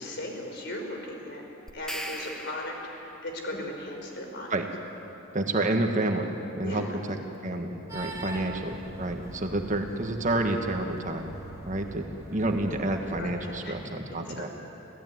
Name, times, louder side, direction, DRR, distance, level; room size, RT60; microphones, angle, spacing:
voice 1, 0.0-1.4 1.7-4.5 6.6-7.0 8.3-8.6 13.1-13.8 14.3-14.5, left 1 dB, 55° left, 2 dB, 4.4 m, -37 dB
sound 1, 1.7-3.3, equal, 5° left, 1.4 m, -38 dB
voice 2, 5.3-6.3 6.6-7.2 7.4-11.3 11.7-12.0 12.3-14.5, right 2 dB, 40° right, 4 dB, 1.6 m, -29 dB
sound 2, 7.9-13.2, right 1 dB, 15° right, 2.9 m, -42 dB
27.0 x 16.5 x 9.4 m, 3.0 s
head